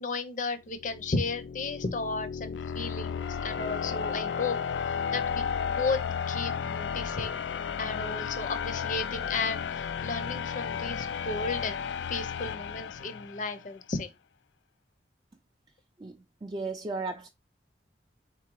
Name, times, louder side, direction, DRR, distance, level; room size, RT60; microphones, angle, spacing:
voice 1, 0.0-4.6 5.1-6.0 6.3-7.4 7.8-11.8 12.1-14.1, left 3 dB, 45° left, 0.7 m, -34 dB
sound 1, 0.7-13.6, left 7 dB, 85° left, 0.4 m, -33 dB
voice 2, 16.0-17.3, right 3 dB, 25° right, 0.4 m, -35 dB
4.2 x 3.7 x 3.0 m
head